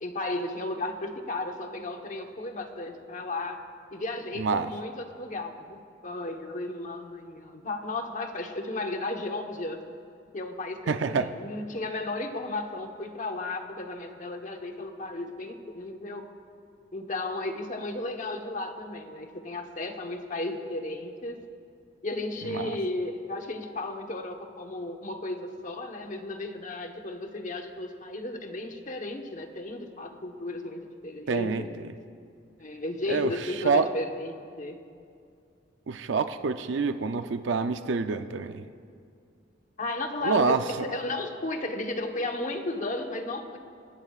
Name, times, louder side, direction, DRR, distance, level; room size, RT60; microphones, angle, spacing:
voice 1, 0.0-3.6 3.9-9.8 10.3-16.3 16.9-21.4 22.0-31.7 32.6-34.8 39.8-43.6, left 2 dB, 40° left, 4 dB, 1.1 m, -34 dB
voice 2, 4.4-4.7 10.9-11.3 22.4-22.8 31.3-31.6 33.1-33.3 33.6-33.9 35.9-38.6 40.2-40.9, right 4 dB, 70° right, 9 dB, 0.5 m, -27 dB
26.5 x 14.0 x 2.4 m, 2.3 s
head